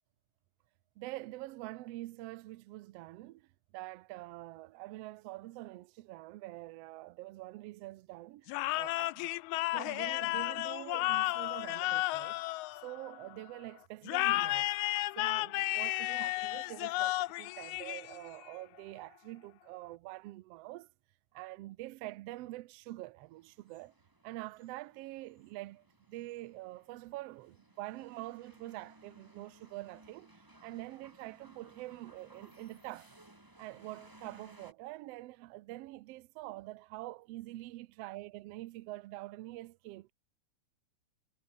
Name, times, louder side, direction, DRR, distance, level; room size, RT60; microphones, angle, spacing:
voice 1, 1.0-9.3 9.7-12.4 12.8-14.8 15.2-20.9 21.3-23.9 24.2-30.3 30.6-33.1 33.6-40.1, right 18 dB, 75° right, 1.4 m, -46 dB
sound 1, 8.5-13.3 14.1-18.5, left 19 dB, 80° left, 1.9 m, -33 dB
sound 2, 23.3-34.7, right 1 dB, 10° right, 1.4 m, -61 dB
omnidirectional pair, 3.6 m